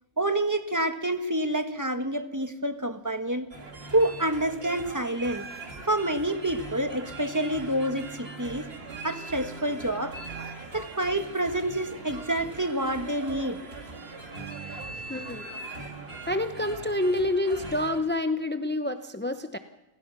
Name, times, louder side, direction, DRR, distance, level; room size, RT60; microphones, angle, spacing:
voice 1, 0.2-3.5 3.9-5.5 5.9-8.7 9.0-10.2 10.7-13.6, right 1 dB, 15° right, 8 dB, 1.1 m, -28 dB
sound 1, 3.5-18.0, right 3 dB, 40° right, 2.1 m, -40 dB
voice 2, 15.1-15.5 16.3-19.6, left 1 dB, 15° left, 9 dB, 0.3 m, -28 dB
29.0 x 16.0 x 6.1 m, 1.1 s
omnidirectional pair, 1.6 m